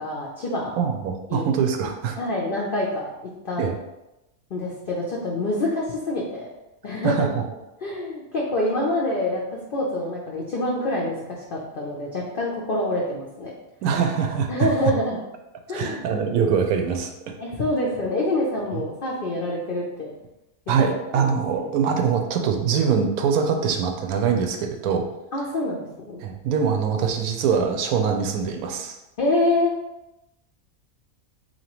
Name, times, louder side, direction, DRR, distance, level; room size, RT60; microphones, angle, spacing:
voice 1, 0.0-0.8 1.3-1.4 2.2-3.1 3.4-3.7 4.5-6.5 6.8-7.3 7.8-13.5 14.5-15.2 15.7-16.0 17.4-20.1 21.1-21.7 25.3-26.2 29.2-29.7, left 1 dB, 55° left, -3 dB, 0.6 m, -26 dB
voice 2, 0.8-2.2 3.6-3.7 7.0-7.4 13.8-14.7 15.7-17.1 18.7-18.8 20.7-25.1 26.2-29.0, right 6 dB, 85° right, 4 dB, 1.1 m, -23 dB
4.2 x 2.9 x 2.9 m, 0.94 s
omnidirectional pair, 1.5 m